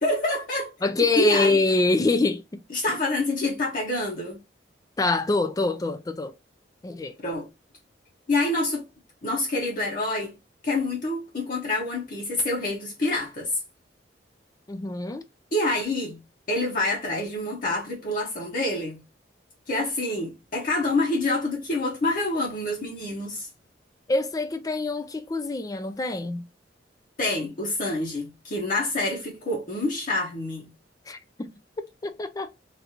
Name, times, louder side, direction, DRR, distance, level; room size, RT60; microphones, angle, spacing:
voice 1, 0.0-0.7 1.0-1.6 2.7-4.4 7.2-7.5 8.3-8.8 9.2-10.3 10.6-13.6 15.5-16.2 16.5-19.0 19.7-23.5 27.2-30.7, left 2 dB, 50° left, 1.0 m, -27 dB
voice 2, 0.8-2.6 2.9-3.0 5.0-6.3 6.8-7.1 14.7-15.2 24.1-26.4 31.1-31.5 31.8-32.5, left 3 dB, 20° left, 0.4 m, -25 dB
3.3 x 2.5 x 2.8 m
head